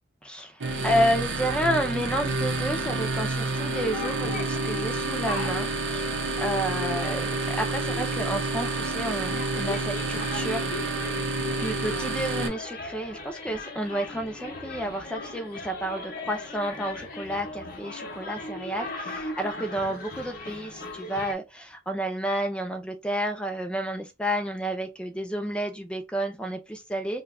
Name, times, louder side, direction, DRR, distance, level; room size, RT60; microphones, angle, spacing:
voice 1, 0.2-10.7 11.5-27.2, equal, 5° left, 0.5 m, -30 dB
sound 1, 0.6-12.5, right 2 dB, 80° right, 0.7 m, -29 dB
sound 2, 3.9-21.3, left 3 dB, 55° left, 0.7 m, -39 dB
2.8 x 2.3 x 3.5 m
head